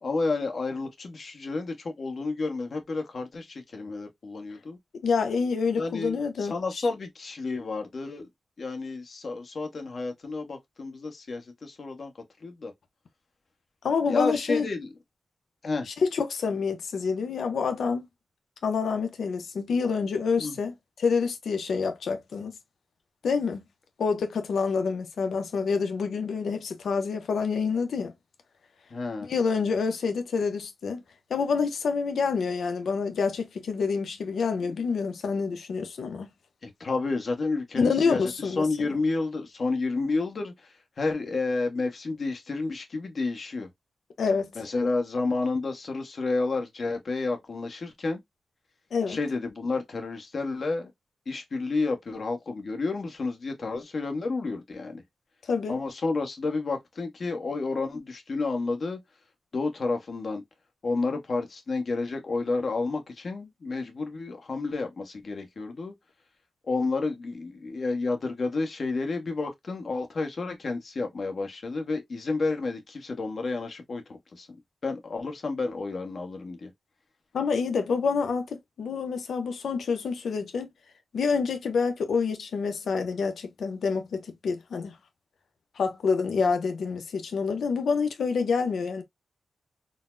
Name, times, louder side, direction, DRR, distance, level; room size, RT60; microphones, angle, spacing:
voice 1, 0.0-4.8 5.8-8.3 8.6-12.1 12.4-12.7 14.1-14.9 15.6-15.9 20.4-20.6 28.9-29.3 34.7-34.8 36.6-43.7 44.5-48.2 49.1-50.9 51.3-55.0 55.7-59.0 59.5-60.4 60.8-65.9 66.7-74.5 74.8-76.7, left 3 dB, 55° left, 1.0 m, -30 dB
voice 2, 5.0-6.5 13.8-14.7 15.9-18.1 18.6-20.7 21.0-22.6 23.2-23.6 24.0-28.1 29.2-31.0 31.3-36.3 37.8-38.6 44.2-44.5 48.9-49.2 55.5-55.8 77.3-80.7 81.1-85.0 85.8-89.0, left 5 dB, 85° left, 0.7 m, -27 dB
3.9 x 2.1 x 2.4 m
cardioid pair, 80°, 0 cm